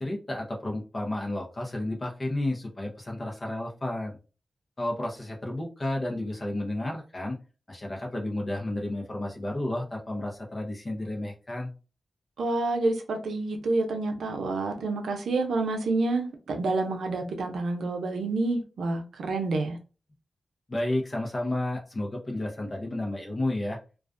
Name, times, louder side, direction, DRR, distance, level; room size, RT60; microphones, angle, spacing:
voice 1, 0.0-4.1 4.8-7.4 7.7-11.7 20.7-23.8, left 1 dB, 45° left, 0.7 m, -32 dB
voice 2, 12.4-19.8, right 3 dB, 85° right, 0.5 m, -28 dB
2.4 x 2.2 x 2.4 m
cardioid pair, 45°, 0 cm